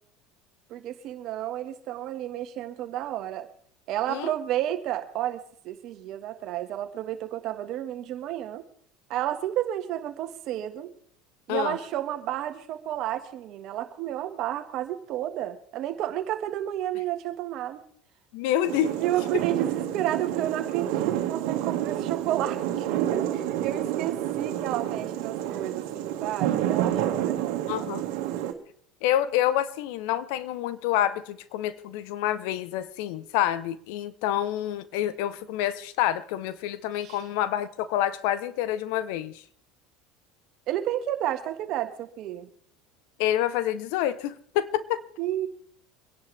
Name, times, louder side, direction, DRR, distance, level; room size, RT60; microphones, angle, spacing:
voice 1, 0.7-3.5 3.9-8.6 9.1-10.9 11.5-17.8 19.0-27.9 37.0-37.2 40.7-42.5 45.2-45.5, right 12 dB, 55° right, 8 dB, 1.8 m, -31 dB
voice 2, 18.3-18.9 27.7-28.0 29.0-39.4 43.2-45.0, left 12 dB, 75° left, 15 dB, 1.0 m, -27 dB
sound 1, 18.6-28.5, right 11 dB, 75° right, 2.0 m, -29 dB
25.0 x 10.5 x 3.5 m, 0.64 s
supercardioid pair, 95°, 0 cm